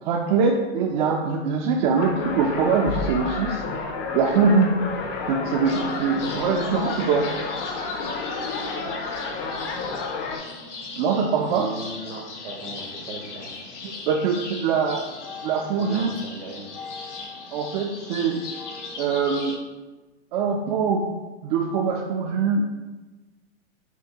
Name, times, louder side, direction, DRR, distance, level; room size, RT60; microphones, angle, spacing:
voice 1, 0.0-3.6 4.1-4.7 5.3-7.3 10.9-11.7 13.8-15.1 15.4-16.1 17.5-18.4 19.0-19.5 20.3-21.1 21.4-22.7, right 5 dB, 45° right, 1 dB, 0.4 m, -23 dB
sound 1, 2.0-10.4, left 4 dB, 35° left, 0.6 m, -30 dB
sound 2, 5.6-19.6, left 4 dB, 80° left, 0.8 m, -38 dB
voice 2, 11.5-13.6 15.8-16.6, right 3 dB, 75° right, 2 dB, 1.0 m, -37 dB
5.8 x 2.3 x 2.8 m, 1.2 s
hypercardioid pair, 115°, 35 cm